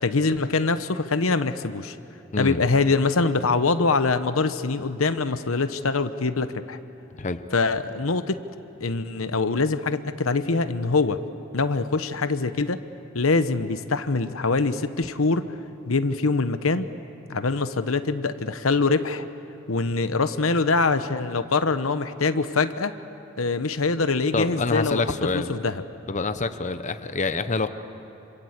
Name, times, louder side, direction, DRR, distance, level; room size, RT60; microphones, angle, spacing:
voice 1, 0.0-2.0 2.4-6.8 7.5-8.4 8.8-11.2 11.5-12.8 13.1-15.5 15.9-16.9 17.3-19.2 19.7-22.9 23.4-25.0 25.3-25.8, left 3 dB, 85° left, 11 dB, 1.0 m, -24 dB
voice 2, 24.3-25.5 26.1-27.7, left 3 dB, 35° left, 10 dB, 0.9 m, -26 dB
27.0 x 26.5 x 8.1 m, 2.9 s
head